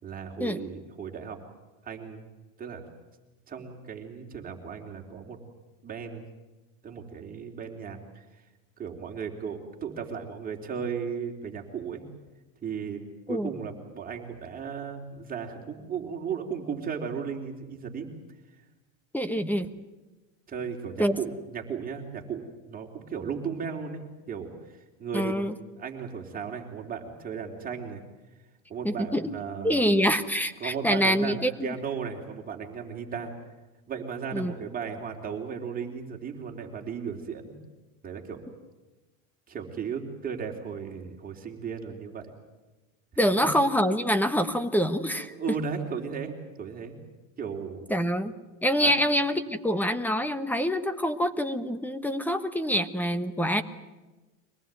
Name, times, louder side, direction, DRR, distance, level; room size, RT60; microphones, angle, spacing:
voice 1, 0.0-1.4 1.8-2.3 2.6-2.9 3.5-5.4 5.8-6.3 6.8-8.2 8.8-12.1 12.6-13.0 13.3-18.1 20.5-25.3 25.8-28.0 28.7-29.9 30.6-33.3 33.9-37.5 38.0-38.5 39.5-42.3 45.2-46.9 47.4-47.9 48.8-48.9, right 6 dB, 20° right, 2 dB, 3.7 m, -35 dB
voice 2, 19.1-19.7 21.0-21.2 25.1-25.5 28.8-29.3 29.6-31.7 34.3-34.5 43.2-45.3 47.9-48.4 48.6-53.6, equal, 5° left, 12 dB, 1.1 m, -26 dB
24.5 x 19.0 x 9.2 m, 1.1 s
supercardioid pair, 140°, 39 cm